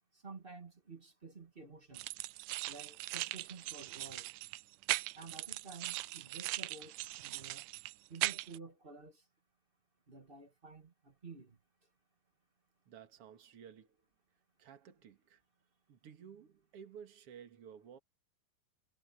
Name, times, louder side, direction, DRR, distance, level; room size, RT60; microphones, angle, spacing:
voice 1, 0.1-2.1 2.7-4.3 5.1-7.7 8.1-9.2 10.1-11.6, right 4 dB, 25° right, 1.5 m, -52 dB
sound 1, 1.9-8.6, right 18 dB, 80° right, 2.1 m, -40 dB
voice 2, 12.9-14.0 14.6-15.4 15.9-18.0, right 8 dB, 50° right, 2.7 m, -54 dB
omnidirectional pair, 3.7 m